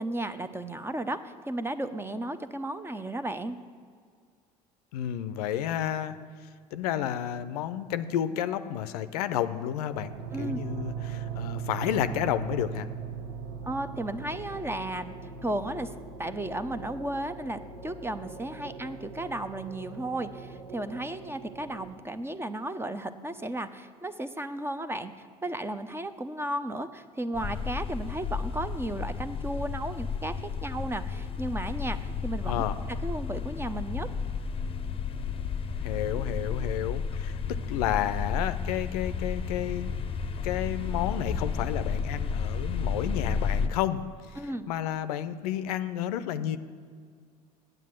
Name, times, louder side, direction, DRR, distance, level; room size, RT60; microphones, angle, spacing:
voice 1, 0.0-3.6 10.3-10.6 13.6-15.1 15.4-15.9 16.2-32.6 33.0-34.1 44.4-44.7, right 1 dB, 10° right, 11 dB, 0.6 m, -34 dB
voice 2, 4.9-6.2 6.7-12.9 32.5-32.8 35.8-37.4 37.7-39.9 40.4-44.0 44.7-46.6, left 11 dB, 70° left, 12 dB, 0.5 m, -31 dB
sound 1, 9.9-21.9, right 7 dB, 75° right, 0.9 m, -40 dB
sound 2, 27.3-43.7, left 5 dB, 25° left, 0.8 m, -32 dB
9.2 x 7.9 x 7.4 m, 2.1 s
figure-of-eight pair, 60°, 20 cm